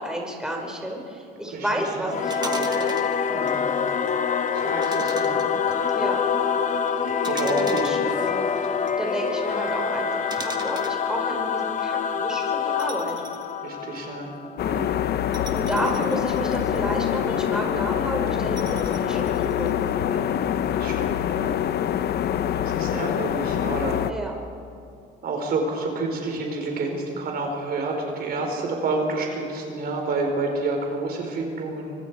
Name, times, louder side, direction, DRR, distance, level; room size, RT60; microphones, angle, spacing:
voice 1, 0.0-3.0 5.9-6.2 7.4-13.2 15.5-19.7 24.1-24.3, right 1 dB, 5° right, 0 dB, 5.2 m, -31 dB
Singing / Musical instrument, 2.1-15.0, left 6 dB, 40° left, 1.2 m, -26 dB
sound 1, 2.3-3.2 4.8-5.7 7.2-8.7 10.3-11.0 12.8-13.5 14.0-14.1 15.3-16.9 18.6-19.7, right 4 dB, 20° right, 1.8 m, -39 dB
voice 2, 3.3-3.6 4.5-5.4 7.3-7.9 13.6-14.3 14.6-14.9 20.1-20.4 20.8-21.6 22.6-24.0 25.2-31.9, right 3 dB, 55° right, 2 dB, 4.3 m, -29 dB
sound 2, 14.6-24.1, left 10 dB, 55° left, 0.8 m, -25 dB
25.0 x 25.0 x 4.8 m, 2.6 s
cardioid pair, 105°, 19 cm